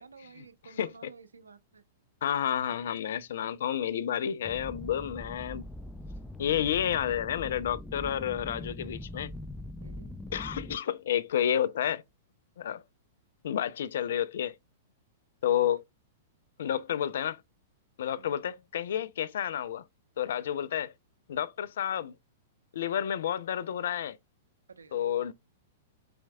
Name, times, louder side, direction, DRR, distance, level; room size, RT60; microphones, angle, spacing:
voice 1, 0.0-1.8 9.8-10.1 18.2-18.5 24.7-24.9, right 5 dB, 85° right, 0.7 m, -52 dB
voice 2, 0.8-1.1 2.2-5.6 6.4-9.3 10.3-12.0 12.6-12.8 13.4-14.5 15.4-15.8 16.6-17.4 18.0-19.8 20.2-20.9 21.3-22.1 22.7-24.2 24.9-25.3, left 10 dB, 70° left, 0.5 m, -30 dB
sound 1, 4.4-10.8, left 1 dB, 5° left, 0.4 m, -42 dB
4.5 x 4.3 x 2.3 m
hypercardioid pair, 110°, 0 cm